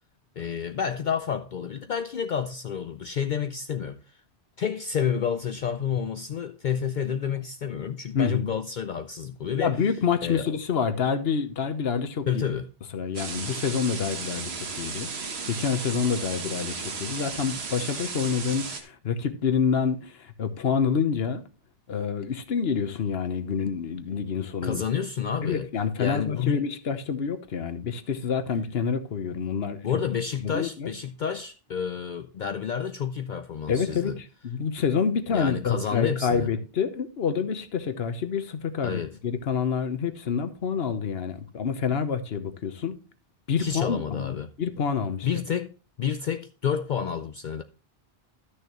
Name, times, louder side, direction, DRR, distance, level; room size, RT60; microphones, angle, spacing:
voice 1, 0.4-4.2 4.6-9.8 10.2-10.5 12.3-12.7 24.6-25.7 26.0-26.7 29.8-34.2 35.3-36.5 38.8-39.2 43.6-44.5 45.2-47.6, left 7 dB, 55° left, 0.6 m, -29 dB
voice 2, 8.1-8.5 9.5-12.4 12.9-21.4 21.9-24.8 25.4-29.8 30.4-30.9 33.7-43.0 43.5-45.3, left 6 dB, 75° left, 1.2 m, -27 dB
sound 1, 13.1-18.8, right 5 dB, 85° right, 1.4 m, -35 dB
12.5 x 6.6 x 3.0 m
omnidirectional pair, 1.0 m